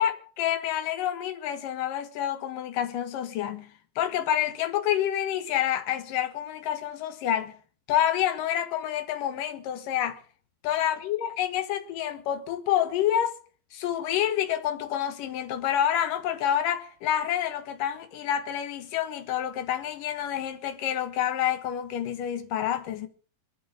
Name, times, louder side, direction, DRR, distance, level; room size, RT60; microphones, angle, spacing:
voice 1, 0.0-7.5 7.9-10.2 10.6-13.4 13.7-23.1, left 10 dB, 70° left, 2.8 m, -28 dB
22.5 x 11.0 x 5.2 m
omnidirectional pair, 4.1 m